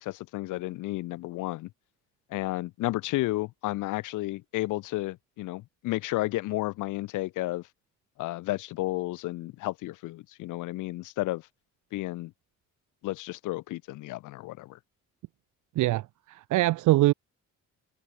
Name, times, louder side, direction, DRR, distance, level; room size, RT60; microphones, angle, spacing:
voice 1, 0.0-1.7 2.3-7.6 8.2-11.4 11.9-12.3 13.0-14.8, left 18 dB, 85° left, 0.6 m, -32 dB
voice 2, 15.8-17.1, right 17 dB, 80° right, 0.6 m, -23 dB
cardioid pair, 90°, 30 cm